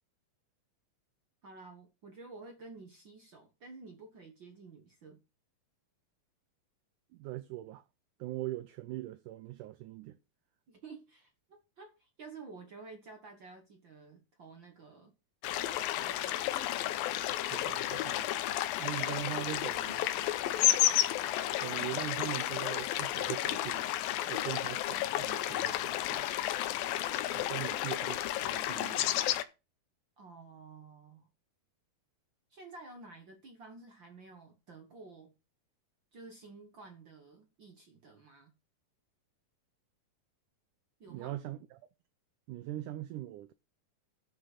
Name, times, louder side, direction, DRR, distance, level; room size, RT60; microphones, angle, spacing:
voice 1, 1.4-5.2 10.7-15.1 15.9-16.4 27.5-27.8 30.2-31.3 32.5-35.3 36.1-38.5 41.0-41.3, right 3 dB, 55° right, 1.3 m, -51 dB
voice 2, 7.1-7.8 8.2-10.2 17.5-18.3 18.8-20.1 21.6-24.0 24.3-26.3 27.3-29.1 41.1-41.8 42.5-43.5, right 15 dB, 80° right, 1.9 m, -41 dB
sound 1, 15.4-29.4, left 13 dB, 80° left, 2.5 m, -32 dB
12.0 x 5.9 x 5.6 m
omnidirectional pair, 4.2 m